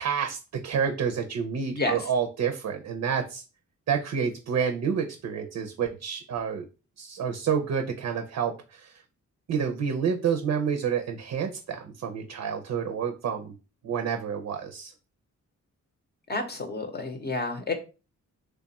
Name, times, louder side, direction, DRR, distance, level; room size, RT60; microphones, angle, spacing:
voice 1, 0.0-3.4 3.9-6.7 7.0-9.0 9.5-13.5 13.8-14.9, right 7 dB, 70° right, 4 dB, 0.6 m, -29 dB
voice 2, 1.7-2.1 16.3-17.7, left 2 dB, 35° left, 5 dB, 0.7 m, -30 dB
3.3 x 2.3 x 4.0 m, 0.32 s
wide cardioid pair, 105°, 29 cm